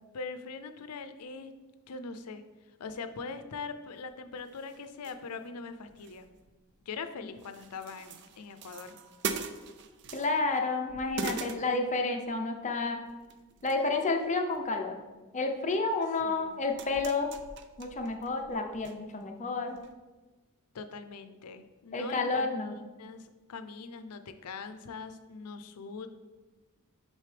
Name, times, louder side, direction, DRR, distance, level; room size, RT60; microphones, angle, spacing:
voice 1, 0.1-1.5 1.9-2.4 2.8-6.3 6.9-9.0 16.2-16.6 20.7-26.1, left 4 dB, 90° left, 10 dB, 0.5 m, -42 dB
sound 1, 4.0-4.1 4.5-5.5 5.8-7.1 7.4-10.6 10.9-12.3 13.1-13.9 14.2-14.7 15.7-15.8 16.4-18.9 19.2-19.3 19.8-19.9, right 5 dB, 55° right, 0.4 m, -42 dB
voice 2, 10.1-13.0 13.6-15.0 15.3-17.3 17.8-19.8 21.9-22.8, left 3 dB, 35° left, 4 dB, 0.6 m, -30 dB
6.5 x 5.4 x 3.3 m, 1.2 s
head